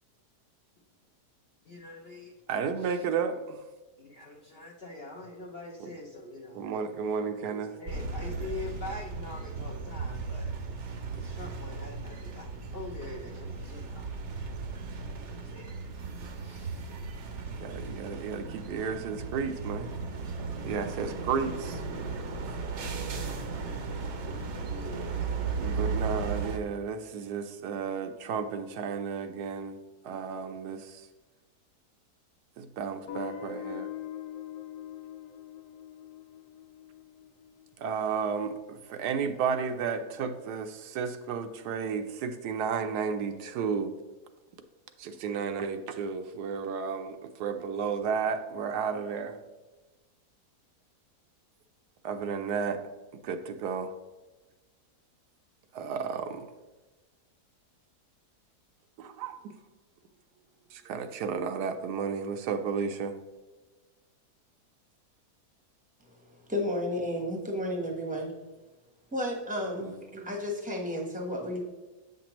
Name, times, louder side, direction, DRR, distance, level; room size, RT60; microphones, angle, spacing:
voice 1, 1.6-2.3 2.8-3.1 4.0-6.7 7.2-10.9 11.2-14.1 15.3-15.9 16.4-16.9, left 2 dB, 55° left, -1 dB, 0.7 m, -44 dB
voice 2, 2.5-3.6 5.8-5.9 6.5-7.7 17.6-19.9 20.6-21.8 25.5-29.8 30.0-31.1 32.6-33.9 37.8-43.9 45.0-49.4 52.0-52.8 53.1-53.9 55.7-56.5 59.0-59.4 60.7-63.2, right 6 dB, 80° right, 7 dB, 1.2 m, -33 dB
sound 1, 7.9-26.6, right 4 dB, 55° right, 0.9 m, -36 dB
Guitar, 33.1-37.9, left 9 dB, 70° left, 1.1 m, -42 dB
voice 3, 66.5-68.3 69.1-71.6, left 1 dB, 5° right, 1 dB, 0.7 m, -32 dB
8.0 x 6.0 x 3.0 m, 1.2 s
omnidirectional pair, 1.8 m